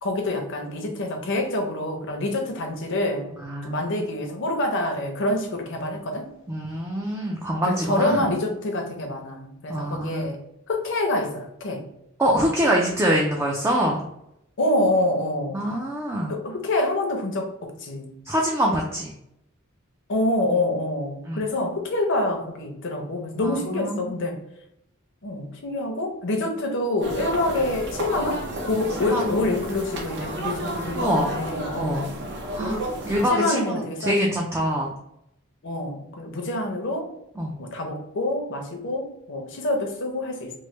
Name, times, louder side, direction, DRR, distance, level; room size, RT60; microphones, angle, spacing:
voice 1, 0.0-3.3 3.6-6.3 7.6-10.4 10.7-11.8 14.6-15.7 16.3-18.1 20.1-24.4 25.2-32.1 33.3-34.2 35.6-37.1 37.6-40.5, left 1 dB, 60° left, 3 dB, 0.7 m, -26 dB
voice 2, 3.4-3.8 6.5-8.2 9.7-10.3 12.2-14.0 15.5-16.3 18.3-19.1 21.3-21.5 23.4-24.1 29.0-29.4 30.9-31.4 31.7-32.0 32.5-32.8 33.1-34.9 37.4-37.6, equal, 10° right, -2 dB, 0.4 m, -25 dB
sound 1, 27.0-33.3, right 1 dB, 55° right, 0.6 m, -31 dB
3.1 x 2.1 x 3.1 m, 0.81 s
head